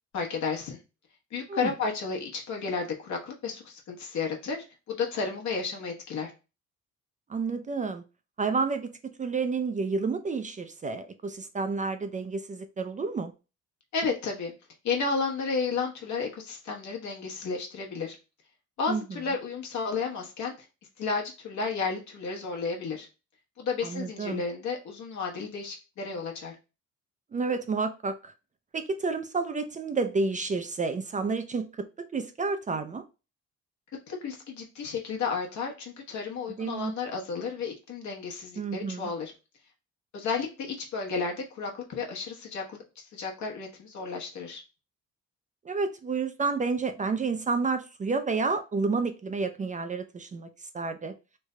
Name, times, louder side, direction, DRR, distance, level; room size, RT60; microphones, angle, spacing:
voice 1, 0.1-0.8 1.3-6.3 13.9-14.5 14.8-18.2 18.8-20.5 21.0-23.1 23.6-26.6 34.1-39.3 40.1-44.6, left 5 dB, 70° left, 1.1 m, -32 dB
voice 2, 7.3-8.0 8.4-8.9 9.2-13.3 18.9-19.0 23.8-24.4 27.3-28.3 28.7-31.9 32.1-33.0 36.6-36.9 38.6-39.1 45.7-50.5 50.7-51.1, right 4 dB, 25° right, 0.3 m, -30 dB
3.2 x 2.1 x 3.6 m
cardioid pair, 90°, 30 cm